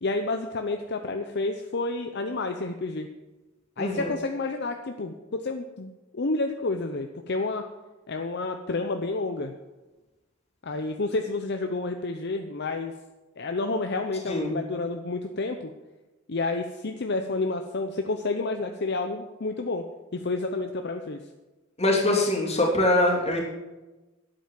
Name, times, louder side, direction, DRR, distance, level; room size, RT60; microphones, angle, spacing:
voice 1, 0.0-3.1 3.8-7.6 8.1-9.5 10.6-12.9 13.4-15.7 16.3-19.8 20.1-21.2, left 3 dB, 55° left, 5 dB, 0.8 m, -30 dB
voice 2, 3.8-4.1 14.3-14.5 21.8-23.4, left 1 dB, 30° left, -2 dB, 3.2 m, -23 dB
11.5 x 9.0 x 7.5 m, 1.1 s
head